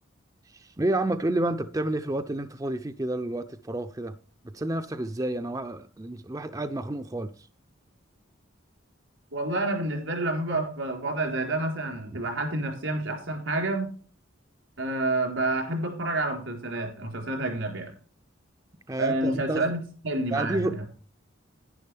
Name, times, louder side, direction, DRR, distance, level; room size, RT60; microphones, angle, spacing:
voice 1, 0.5-4.1 4.5-7.3 18.9-19.6 20.3-20.8, right 1 dB, 20° right, 0.5 m, -30 dB
voice 2, 9.3-13.9 14.8-17.9 19.0-20.9, right 2 dB, 85° right, 3.9 m, -29 dB
11.0 x 10.5 x 3.4 m
head